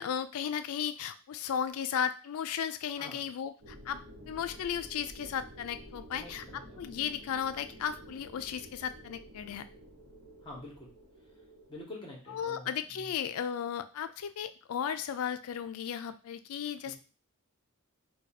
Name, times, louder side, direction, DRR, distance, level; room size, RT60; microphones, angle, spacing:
voice 1, 0.0-9.7 12.3-17.0, left 8 dB, 75° left, 11 dB, 0.3 m, -35 dB
sound 1, 3.6-11.8, equal, 70° right, 1.0 m, -51 dB
voice 2, 6.1-6.8 10.4-10.9 11.7-13.1 16.8-17.0, left 2 dB, 20° left, -2 dB, 1.0 m, -47 dB
2.6 x 2.3 x 4.0 m, 0.35 s
head